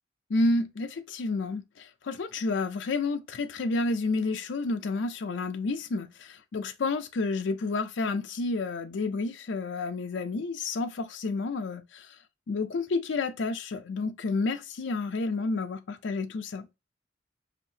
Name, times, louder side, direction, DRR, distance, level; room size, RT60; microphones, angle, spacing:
voice 1, 0.3-12.2 12.5-16.7, left 3 dB, 75° left, 0.4 m, -30 dB
5.1 x 2.6 x 2.7 m
head